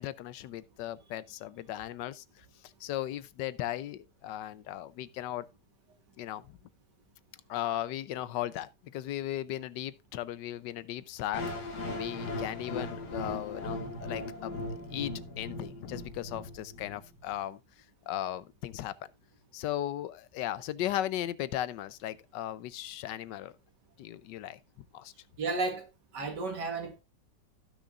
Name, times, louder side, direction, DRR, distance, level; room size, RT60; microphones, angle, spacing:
voice 1, 0.0-5.5 6.2-6.6 7.5-11.5 12.0-14.6 14.9-17.6 18.1-19.1 19.5-23.5 24.0-25.1, left 12 dB, 85° left, 1.3 m, -37 dB
sound 1, 11.3-17.3, left 2 dB, 70° left, 2.2 m, -38 dB
voice 2, 25.4-25.9 26.1-27.0, right 3 dB, 75° right, 2.3 m, -33 dB
16.0 x 6.3 x 2.4 m
omnidirectional pair, 1.9 m